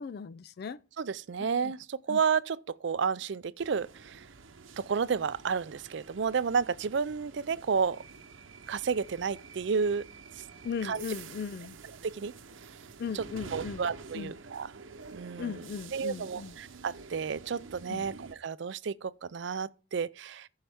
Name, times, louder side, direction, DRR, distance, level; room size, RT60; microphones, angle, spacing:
voice 1, 0.0-0.8 1.4-1.7 2.1-2.2 10.6-11.8 13.0-13.9 14.1-14.3 15.4-16.5 17.9-18.1, left 6 dB, 50° left, 0.3 m, -38 dB
voice 2, 1.0-4.2 4.8-8.0 8.7-10.1 10.4-10.5 10.8-11.0 12.0-12.3 13.1-13.2 13.5-14.8 15.1-15.6 15.9-20.5, right 6 dB, 65° right, 0.4 m, -31 dB
sound 1, 3.6-18.3, right 4 dB, 85° right, 0.8 m, -49 dB
14.5 x 5.6 x 3.5 m
head